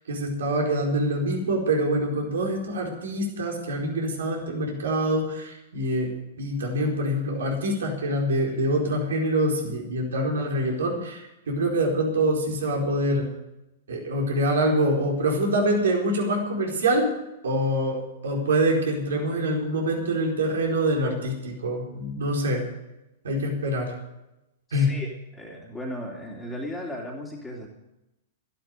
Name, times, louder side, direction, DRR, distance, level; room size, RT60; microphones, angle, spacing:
voice 1, 0.1-6.1 6.4-13.3 13.9-17.1 17.4-22.6 23.2-23.9 24.7-24.9, right 1 dB, 70° right, 0 dB, 4.5 m, -25 dB
voice 2, 24.7-25.1 25.3-27.7, left 1 dB, 10° left, -3 dB, 2.9 m, -36 dB
13.5 x 11.5 x 6.7 m, 0.92 s
figure-of-eight pair, 105°, 0 cm